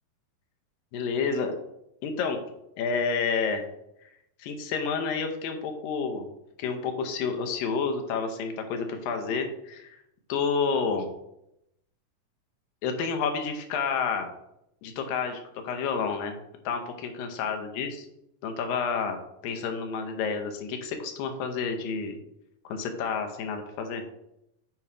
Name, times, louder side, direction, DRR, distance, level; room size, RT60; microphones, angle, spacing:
voice 1, 0.9-1.6 2.0-2.4 2.8-3.7 4.0-4.1 4.4-6.3 6.6-10.0 10.3-11.1 12.8-14.3 14.8-16.4 16.6-18.1 18.4-19.2 19.4-22.2 22.6-24.1, left 5 dB, 80° left, 5 dB, 2.6 m, -29 dB
8.9 x 3.1 x 4.8 m, 0.82 s
omnidirectional pair, 4.1 m